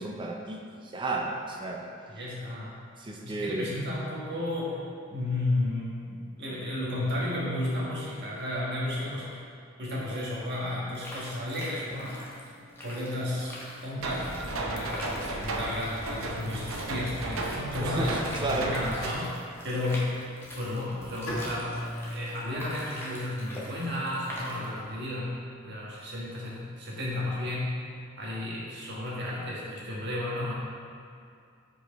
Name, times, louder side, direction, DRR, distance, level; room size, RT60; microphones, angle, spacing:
voice 1, 0.0-1.9 3.0-3.7 17.8-18.7, right 2 dB, 25° right, 0 dB, 0.5 m, -32 dB
voice 2, 2.1-2.7 3.2-4.8 5.1-9.4 9.8-12.2 12.8-13.5 13.8-19.3 19.6-20.1 20.5-21.7 22.1-25.4 25.6-27.8 28.2-30.5, left 1 dB, 55° right, -6 dB, 1.5 m, -33 dB
sound 1, 10.9-24.9, left 1 dB, 10° left, 0.9 m, -45 dB
sound 2, 14.0-19.1, right 2 dB, 80° right, 0.7 m, -34 dB
Bowed string instrument, 21.3-24.3, left 1 dB, 65° left, 1.4 m, -39 dB
5.1 x 4.6 x 4.4 m, 2.3 s
head